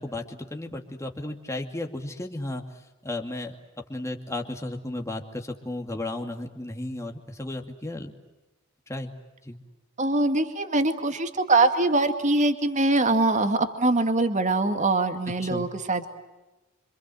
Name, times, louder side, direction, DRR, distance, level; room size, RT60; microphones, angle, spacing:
voice 1, 0.0-2.6 3.0-3.6 3.9-8.1 8.9-9.1 9.4-9.6 15.4-15.6, left 2 dB, 15° left, 3 dB, 2.4 m, -34 dB
voice 2, 10.0-16.1, right 2 dB, 35° right, 7 dB, 2.1 m, -23 dB
27.5 x 26.5 x 7.8 m, 1.0 s
head